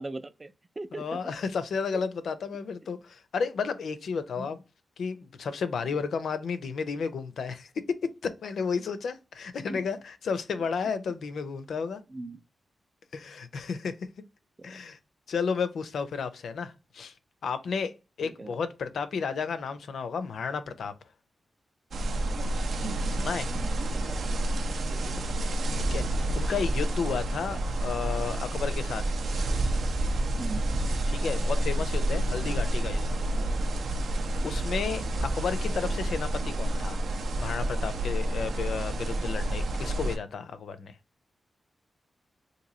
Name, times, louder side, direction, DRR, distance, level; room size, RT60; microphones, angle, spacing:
voice 1, 0.0-1.0 4.4-4.5 9.7-9.9 12.1-12.4 14.6-14.8 18.2-18.5 23.4-23.7 24.1-25.0 30.4-30.6 33.5-33.7, right 2 dB, 25° right, 0.4 m, -40 dB
voice 2, 0.9-4.6 5.0-12.0 13.1-14.0 14.6-15.0 15.3-17.1 17.4-20.9 23.2-23.5 25.9-29.2 31.1-33.1 34.4-37.0 37.4-41.0, left 5 dB, 85° left, 0.4 m, -32 dB
sound 1, 21.9-40.2, right 1 dB, 85° right, 0.6 m, -29 dB
3.0 x 2.6 x 3.8 m
wide cardioid pair, 100°, 0 cm